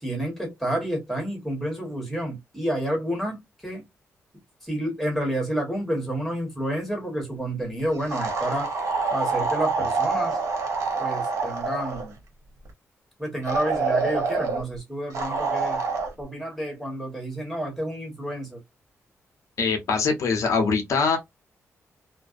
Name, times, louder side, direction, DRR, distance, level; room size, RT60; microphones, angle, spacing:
voice 1, 0.0-3.8 4.6-8.7 9.1-10.4 11.0-12.1 13.2-15.8 16.2-18.6, right 1 dB, ahead, 1.2 m, -29 dB
sound 1, 8.1-12.1 13.5-14.6 15.1-16.1, right 4 dB, 75° right, 0.9 m, -26 dB
voice 2, 19.6-21.2, left 5 dB, 80° left, 0.7 m, -23 dB
2.4 x 2.1 x 2.4 m
wide cardioid pair, 140°, 5 cm